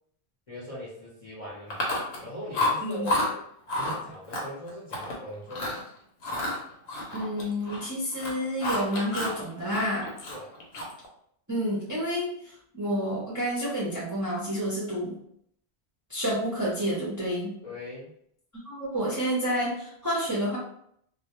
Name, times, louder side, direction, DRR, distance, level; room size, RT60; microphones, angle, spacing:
voice 1, 0.5-1.8 2.2-3.4 3.8-5.8 10.3-10.5 17.6-18.1, left 1 dB, 40° left, -6 dB, 0.6 m, -40 dB
Chewing mastication, 1.7-2.3 2.5-3.3 3.7-4.0 4.3-5.2 5.5-5.8 6.2-7.9 8.1-9.4 9.7-11.1, left 2 dB, 80° left, 0.9 m, -30 dB
voice 2, 7.1-10.1 11.5-15.1 16.1-17.5 18.6-20.6, equal, 25° right, -7 dB, 0.5 m, -29 dB
2.2 x 2.1 x 2.9 m, 0.70 s
omnidirectional pair, 1.1 m